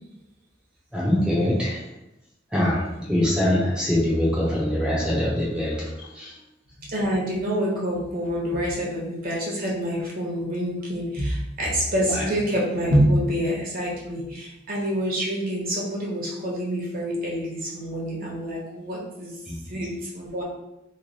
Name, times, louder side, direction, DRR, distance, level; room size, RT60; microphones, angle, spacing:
voice 1, 0.9-1.8 2.5-6.4 12.0-12.2 19.5-19.9, left 1 dB, 5° right, -6 dB, 0.7 m, -24 dB
voice 2, 6.8-19.4 19.7-20.4, equal, 50° right, -4 dB, 1.0 m, -26 dB
3.1 x 2.1 x 3.9 m, 0.89 s
head